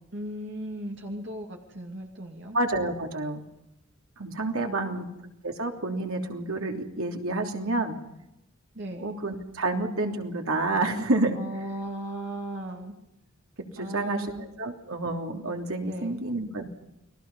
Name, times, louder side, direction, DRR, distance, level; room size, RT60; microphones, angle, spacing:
voice 1, 0.1-2.6 4.7-5.1 8.7-9.1 11.3-12.9 13.8-14.5 15.9-16.2, right 1 dB, 55° right, 1 dB, 2.6 m, -36 dB
voice 2, 2.5-3.4 4.2-5.0 5.4-8.0 9.0-11.4 13.7-14.3 14.6-16.7, right 2 dB, 75° right, 3 dB, 3.1 m, -29 dB
29.5 x 21.5 x 5.5 m, 0.87 s
head